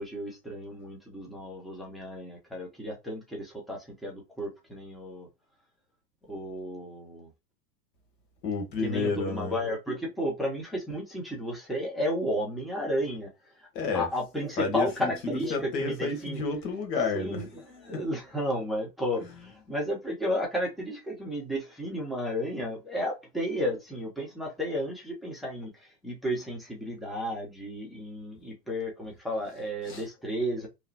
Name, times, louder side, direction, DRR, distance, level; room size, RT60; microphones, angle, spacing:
voice 1, 0.0-5.3 6.3-7.3 8.8-13.3 13.9-16.4 17.1-19.2 19.7-30.7, equal, ahead, 0.9 m, -33 dB
voice 2, 8.4-9.5 13.7-14.1 14.6-17.4 17.9-18.0 19.2-19.3 29.9-30.0, left 4 dB, 80° left, 1.3 m, -30 dB
3.1 x 2.3 x 2.7 m
hypercardioid pair, 110°, 50 cm